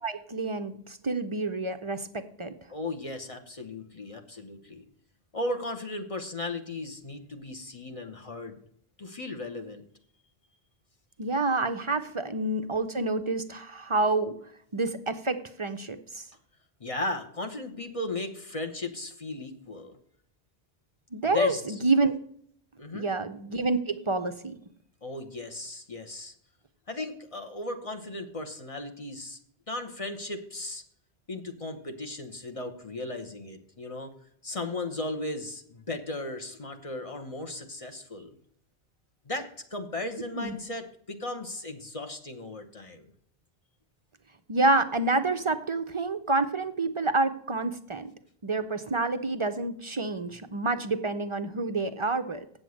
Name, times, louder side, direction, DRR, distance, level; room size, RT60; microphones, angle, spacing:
voice 1, 0.0-2.5 11.2-14.4 14.7-16.3 21.1-22.1 22.9-24.5 40.4-40.5 44.5-48.1 48.4-52.4, right 2 dB, 40° right, 8 dB, 0.5 m, -28 dB
voice 2, 2.7-4.8 5.3-8.6 9.0-9.8 16.8-20.0 21.2-21.6 22.8-23.1 25.0-26.3 26.9-29.4 29.7-30.8 31.3-34.1 34.4-38.4 39.2-43.1, left 2 dB, 35° left, 5 dB, 1.1 m, -36 dB
7.8 x 7.7 x 6.3 m, 0.67 s
omnidirectional pair, 1.1 m